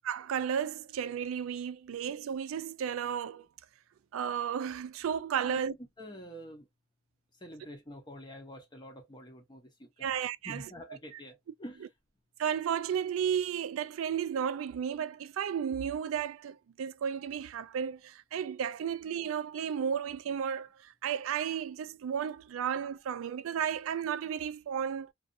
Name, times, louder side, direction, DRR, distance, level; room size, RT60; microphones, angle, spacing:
voice 1, 0.0-3.5 4.1-5.7 10.0-10.7 12.4-25.1, right 8 dB, 85° right, 0.3 m, -33 dB
voice 2, 6.0-6.7 7.4-10.1 10.4-11.9, equal, 20° left, 0.7 m, -47 dB
2.5 x 2.4 x 2.4 m
head